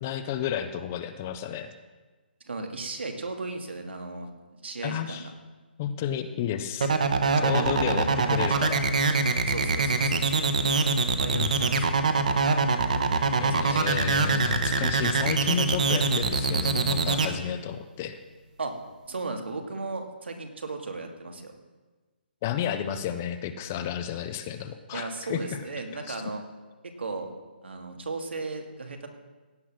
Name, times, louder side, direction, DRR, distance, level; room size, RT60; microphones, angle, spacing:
voice 1, 0.0-1.7 4.8-5.3 5.8-6.9 7.4-8.9 11.3-11.7 13.4-18.2 22.4-25.4 26.1-26.2, left 9 dB, 10° left, 10 dB, 0.3 m, -32 dB
voice 2, 2.5-4.3 4.6-5.3 7.3-8.7 9.5-10.5 11.2-12.4 13.4-13.9 18.6-18.8 19.1-21.5 24.9-26.4 27.0-27.3 27.6-29.1, right 3 dB, 90° right, 4 dB, 2.5 m, -36 dB
sound 1, 6.8-17.3, right 4 dB, 45° right, 1.2 m, -23 dB
16.5 x 9.4 x 6.3 m, 1.3 s
hypercardioid pair, 180°, 6 cm